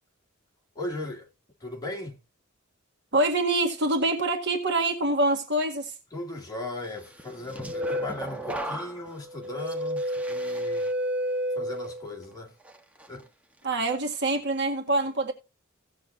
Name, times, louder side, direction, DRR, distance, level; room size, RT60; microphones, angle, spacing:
voice 1, 0.7-1.3 1.6-2.2 6.1-10.9 11.6-12.5 13.1-13.3, left 2 dB, 20° left, 2.4 m, -37 dB
voice 2, 3.1-5.9 13.6-15.3, right 2 dB, 55° right, 1.9 m, -25 dB
sound 1, 7.2-12.2 12.6-13.1, equal, 5° right, 1.1 m, -31 dB
17.0 x 6.9 x 2.5 m
head